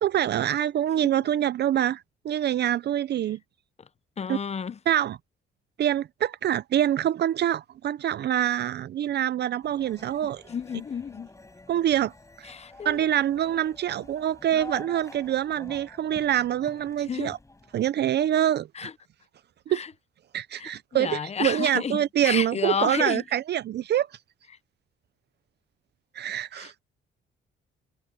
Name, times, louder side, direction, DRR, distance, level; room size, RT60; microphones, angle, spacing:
voice 1, 0.0-3.4 4.3-4.4 4.9-5.2 5.8-10.4 11.7-12.1 12.4-12.5 12.8-17.4 17.7-18.9 19.7-19.8 20.3-24.1 26.1-26.7, right 11 dB, 55° right, 0.5 m, -25 dB
voice 2, 4.2-4.8 10.5-11.3 12.4-13.0 17.0-17.3 18.7-18.9 19.7-19.9 20.6-23.2 26.5-26.8, left 6 dB, 35° left, 0.8 m, -31 dB
sound 1, 9.6-17.9, left 2 dB, 15° left, 4.8 m, -48 dB
cardioid pair, 90°, 20 cm